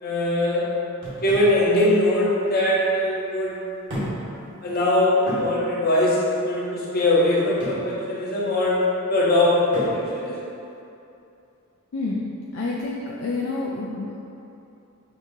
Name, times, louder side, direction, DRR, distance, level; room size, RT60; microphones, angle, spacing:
voice 1, 0.0-0.7 1.2-3.6 4.6-8.8 9.1-10.3, left 1 dB, 45° left, -7 dB, 0.8 m, -21 dB
sound 1, 1.0-1.6 2.7-2.8 3.9-4.3 4.7-4.8 5.3-5.5 7.6-7.9 9.7-10.0, equal, 55° right, 1.4 m, -32 dB
voice 2, 12.5-14.2, left 3 dB, 65° left, -4 dB, 0.3 m, -28 dB
6.1 x 2.5 x 2.7 m, 2.8 s
head